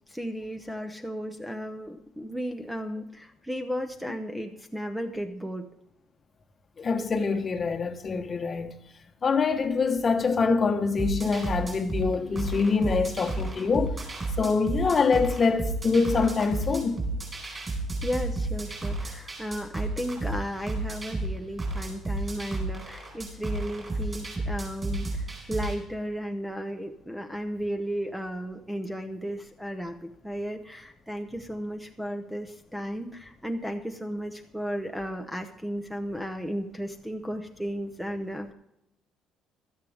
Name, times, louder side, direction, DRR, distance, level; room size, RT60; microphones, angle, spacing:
voice 1, 0.1-5.7 14.7-14.8 18.0-38.5, equal, ahead, 0.7 m, -34 dB
voice 2, 6.8-8.7 9.2-13.9 14.4-17.0, left 4 dB, 25° left, 1.0 m, -25 dB
sound 1, 11.0-25.7, right 2 dB, 25° right, 4.4 m, -32 dB
16.0 x 12.5 x 3.5 m
cardioid pair, 160°, 0 cm